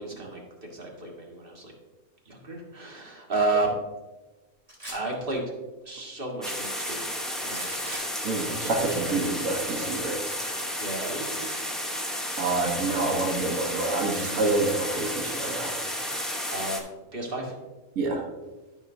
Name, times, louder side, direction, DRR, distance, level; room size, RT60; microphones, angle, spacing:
voice 1, 0.0-1.7 2.2-3.8 4.9-5.5 5.8-7.0 7.4-8.2 8.5-8.8 10.8-11.6 16.5-16.8 17.1-17.6, right 2 dB, 40° right, -1 dB, 1.7 m, -32 dB
sound 1, 4.7-5.1 7.5-8.1 10.2-10.3, right 1 dB, 25° right, 2.6 m, -40 dB
sound 2, 6.4-16.8, equal, ahead, 0.7 m, -32 dB
voice 2, 8.2-10.3 12.4-15.8 17.9-18.2, right 3 dB, 65° right, 0 dB, 1.5 m, -27 dB
12.5 x 5.5 x 2.7 m, 1.1 s
omnidirectional pair, 1.5 m